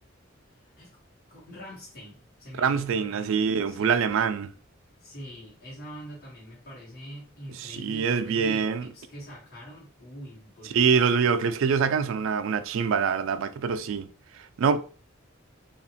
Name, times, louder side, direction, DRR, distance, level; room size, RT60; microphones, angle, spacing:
voice 1, 1.3-4.0 5.0-11.2, equal, 50° left, 1.1 m, -44 dB
voice 2, 2.5-4.5 7.5-8.8 10.7-14.1 14.4-14.8, right 6 dB, 70° right, 0.3 m, -25 dB
2.8 x 2.4 x 2.7 m
head